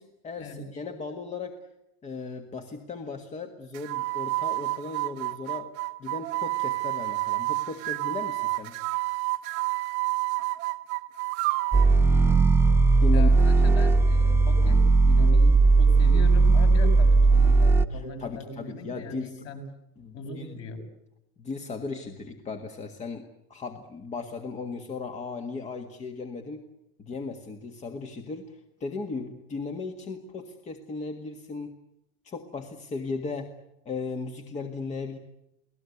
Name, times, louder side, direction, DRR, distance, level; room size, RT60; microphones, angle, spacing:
voice 1, 0.0-1.6 2.0-5.7 6.0-8.7 13.0-13.3 13.7-13.8 17.9-19.5 20.0-20.6 21.4-23.2 23.5-26.6 27.0-31.7 32.2-33.5 33.8-35.2, left 4 dB, 25° left, 6 dB, 1.7 m, -36 dB
sound 1, 3.7-11.9, right 21 dB, 55° right, 1.1 m, -29 dB
sound 2, 11.7-17.8, right 3 dB, 10° right, 0.9 m, -18 dB
voice 2, 13.1-19.6 20.1-20.8, left 2 dB, 45° left, 4 dB, 6.3 m, -39 dB
29.5 x 18.5 x 8.3 m, 0.86 s
cardioid pair, 155°, 30 cm